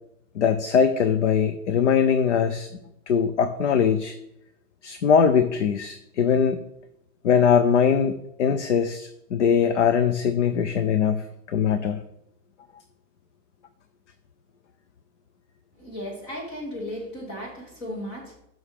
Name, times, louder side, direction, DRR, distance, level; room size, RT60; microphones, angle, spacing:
voice 1, 0.4-2.7 3.1-4.1 4.8-6.6 7.2-12.0, left 7 dB, 50° left, 11 dB, 0.5 m, -21 dB
voice 2, 15.8-18.3, equal, 25° left, -1 dB, 2.5 m, -35 dB
11.0 x 6.2 x 3.5 m, 0.82 s
hypercardioid pair, 170°, 48 cm